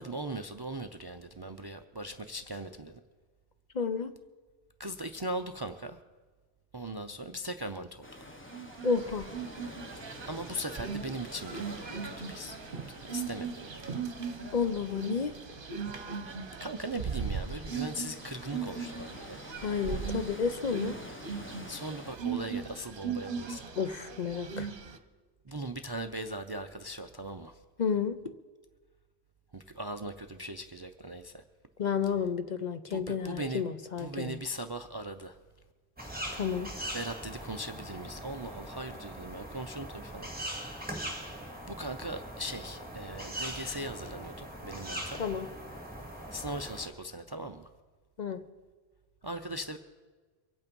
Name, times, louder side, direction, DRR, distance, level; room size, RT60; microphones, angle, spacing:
voice 1, 0.0-3.0 4.8-6.0 6.7-8.3 10.3-12.6 13.1-13.8 16.6-19.4 21.7-23.7 25.4-27.6 29.5-31.4 32.9-33.6 34.0-35.4 36.9-40.3 41.7-45.2 46.3-47.7 49.2-49.8, right 1 dB, 30° right, 8 dB, 0.4 m, -39 dB
voice 2, 3.7-4.1 8.8-9.3 11.9-12.0 14.5-15.4 19.6-20.9 23.8-24.7 27.8-28.3 31.8-34.4 36.3-36.7 45.2-45.5 48.2-48.5, left 6 dB, 50° left, 9 dB, 0.7 m, -31 dB
sound 1, 8.0-22.2, left 1 dB, 15° left, 0.8 m, -49 dB
sound 2, 8.5-25.0, right 6 dB, 55° right, 1.1 m, -39 dB
sound 3, 36.0-46.9, right 1 dB, 10° right, 2.0 m, -41 dB
24.0 x 8.5 x 5.3 m, 1.4 s
omnidirectional pair, 1.1 m